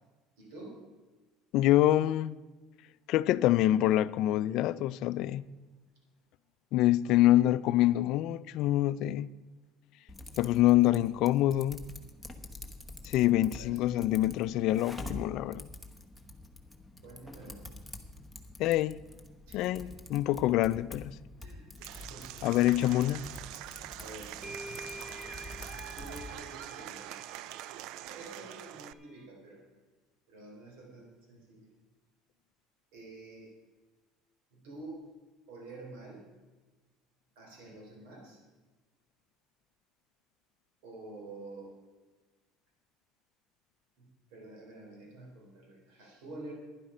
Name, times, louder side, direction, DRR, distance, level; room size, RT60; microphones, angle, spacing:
voice 1, 0.4-0.8 13.3-14.1 17.0-17.7 19.5-19.9 21.4-22.5 24.0-24.4 25.9-27.2 28.0-29.7 30.3-31.7 32.9-33.5 34.5-35.1 35.5-36.3 37.4-38.4 40.8-41.8 44.0-46.5, right 2 dB, 85° right, 3.8 m, -48 dB
voice 2, 1.5-2.4 3.1-5.4 6.7-9.3 10.4-11.8 13.0-15.7 18.6-19.0 19.5-21.1 22.4-23.2, left 14 dB, 60° left, 0.4 m, -26 dB
Typing, 10.1-26.3, left 2 dB, ahead, 1.0 m, -47 dB
Applause / Crowd, 21.8-28.9, right 14 dB, 70° right, 0.3 m, -44 dB
sound 1, 23.8-23.9 24.4-29.3, left 1 dB, 20° right, 0.8 m, -48 dB
11.5 x 10.5 x 5.0 m
cardioid pair, 130°, 0 cm